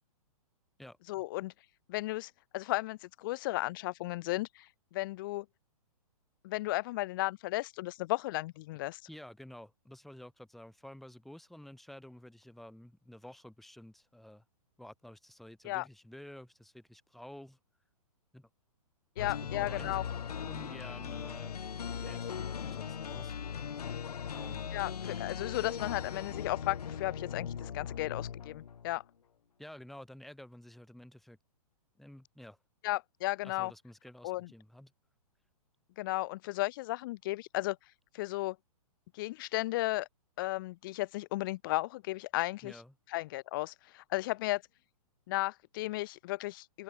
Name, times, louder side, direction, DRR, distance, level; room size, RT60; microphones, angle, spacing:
voice 1, 1.1-1.5 1.9-5.4 6.4-9.0 15.6-15.9 19.2-20.0 24.7-29.0 32.8-33.7 34.2-34.5 36.0-37.8 38.1-38.6 39.1-40.1 40.4-42.8 43.1-44.6 45.3-46.8, left 19 dB, 35° left, 6.0 m, -34 dB
voice 2, 9.1-14.4 14.8-17.6 18.3-18.5 19.2-20.0 20.4-21.6 22.0-22.3 22.6-23.4 24.3-24.7 29.6-31.4 32.0-32.6 33.4-34.9 42.6-42.9, left 1 dB, ahead, 7.9 m, -51 dB
sound 1, 19.2-29.0, left 7 dB, 85° left, 5.5 m, -39 dB
open air
hypercardioid pair, 170°, 19 cm